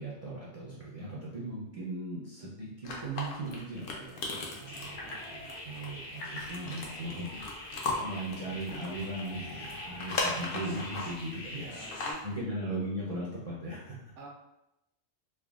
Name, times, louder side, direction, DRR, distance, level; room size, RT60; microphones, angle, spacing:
voice 1, 0.0-14.1, right 1 dB, 45° right, -7 dB, 0.5 m, -38 dB
sound 1, 2.8-11.3 11.7-12.3, left 3 dB, 60° left, 0.6 m, -37 dB
sound 2, 4.6-12.1, left 1 dB, 85° left, 1.1 m, -43 dB
voice 2, 4.7-5.2 11.5-12.2 12.7-12.8 14.2-14.3, right 3 dB, 80° right, -1 dB, 1.0 m, -48 dB
3.3 x 2.2 x 2.3 m, 0.90 s
omnidirectional pair, 1.2 m